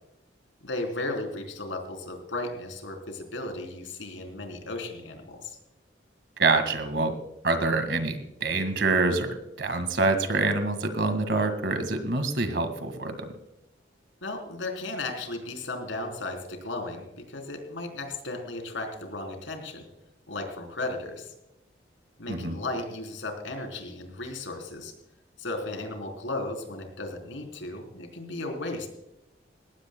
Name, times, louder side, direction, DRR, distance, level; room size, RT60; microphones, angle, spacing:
voice 1, 0.6-5.6 14.2-19.8 20.3-21.3 22.2-24.9 25.4-28.9, left 2 dB, 85° left, 4 dB, 3.7 m, -35 dB
voice 2, 6.4-7.2 7.4-13.3 22.3-22.6, right 3 dB, 65° right, 9 dB, 1.9 m, -26 dB
20.5 x 17.5 x 2.3 m, 0.88 s
head